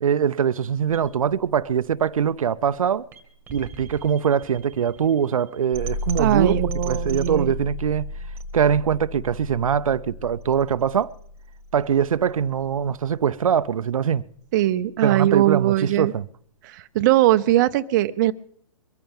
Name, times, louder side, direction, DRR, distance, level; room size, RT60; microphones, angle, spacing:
voice 1, 0.0-3.1 3.5-8.1 8.5-11.1 11.7-14.2 15.0-16.2, right 8 dB, 80° right, 0.5 m, -22 dB
sound 1, 0.9-12.9, left 1 dB, 15° right, 1.7 m, -35 dB
voice 2, 6.2-7.5 14.5-16.1 16.6-18.3, right 14 dB, 35° right, 0.6 m, -20 dB
23.0 x 14.0 x 3.6 m
hypercardioid pair, 140°, 17 cm